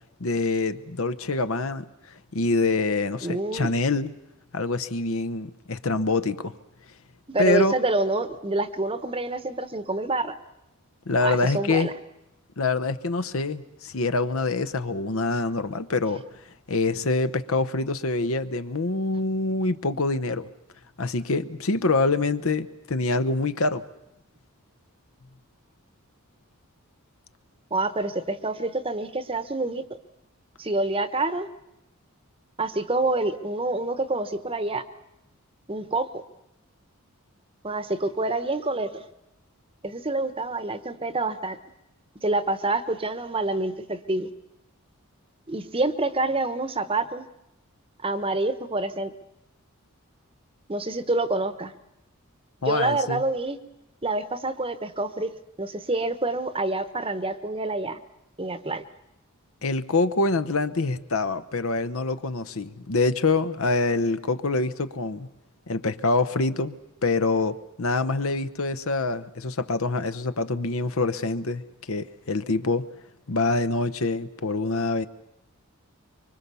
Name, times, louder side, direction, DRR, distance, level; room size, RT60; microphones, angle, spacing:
voice 1, 0.2-1.8 2.3-4.1 4.5-6.5 7.4-7.7 11.1-11.9 12.6-16.2 16.7-20.5 21.0-23.8 52.6-53.2 59.6-65.3 65.7-66.8 67.0-72.8 73.3-75.1, left 3 dB, 70° left, 12 dB, 0.9 m, -25 dB
voice 2, 3.2-3.7 7.3-10.3 11.2-11.9 27.7-29.8 30.6-31.5 32.6-34.8 35.7-36.2 37.6-39.0 39.8-41.6 42.2-44.3 45.5-47.3 48.0-49.1 50.7-51.7 52.7-53.6 54.0-58.0 58.4-58.8, right 2 dB, 25° right, 11 dB, 1.0 m, -27 dB
25.0 x 24.0 x 6.9 m, 0.85 s
head